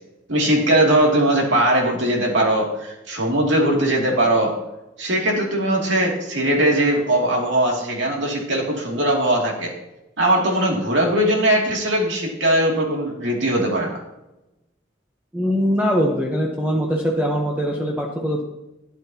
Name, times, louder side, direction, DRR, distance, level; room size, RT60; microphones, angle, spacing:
voice 1, 0.3-4.5 5.0-9.7 10.2-14.0, right 1 dB, 70° right, -1 dB, 2.6 m, -20 dB
voice 2, 15.3-18.4, equal, 10° right, -1 dB, 0.9 m, -22 dB
12.5 x 9.2 x 2.9 m, 0.95 s
head